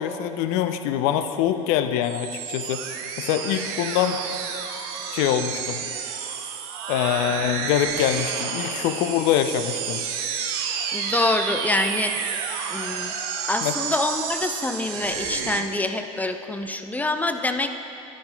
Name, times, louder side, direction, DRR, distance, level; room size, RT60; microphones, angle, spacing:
voice 1, 0.0-2.8 3.2-4.2 5.1-5.8 6.9-10.0 13.6-13.7, left 10 dB, 60° left, 9 dB, 0.5 m, -24 dB
sound 1, 2.0-15.6, right 6 dB, 60° right, 0.8 m, -30 dB
voice 2, 10.9-12.1 12.7-13.1 13.5-17.7, left 2 dB, 10° left, 7 dB, 0.4 m, -26 dB
11.0 x 9.3 x 2.3 m, 3.0 s
hypercardioid pair, 75°, 18 cm